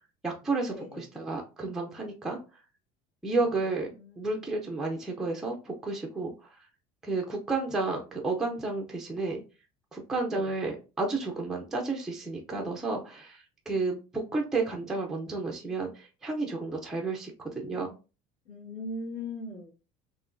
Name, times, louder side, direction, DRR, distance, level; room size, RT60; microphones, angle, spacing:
voice 1, 0.2-2.4 3.2-6.3 7.0-9.4 9.9-17.9, right 3 dB, 5° right, 0 dB, 0.4 m, -32 dB
voice 2, 18.5-19.7, left 2 dB, 60° left, -8 dB, 1.9 m, -38 dB
4.7 x 3.0 x 2.5 m, 0.33 s
cardioid pair, 175°, 17 cm